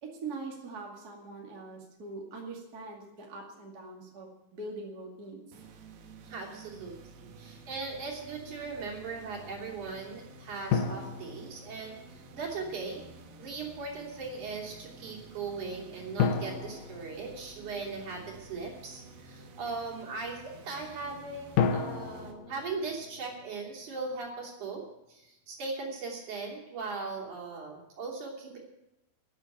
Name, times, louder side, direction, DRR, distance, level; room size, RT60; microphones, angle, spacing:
voice 1, 0.0-5.5, right 3 dB, 30° right, -1 dB, 2.3 m, -42 dB
sound 1, 5.5-22.3, right 2 dB, 90° right, 3.4 m, -51 dB
voice 2, 6.3-13.0 13.4-28.6, right 4 dB, 55° right, -1 dB, 4.2 m, -39 dB
sound 2, 10.7-12.3 16.2-18.1 21.6-23.8, left 6 dB, 70° left, 2.5 m, -32 dB
12.5 x 9.8 x 9.1 m, 0.89 s
omnidirectional pair, 4.2 m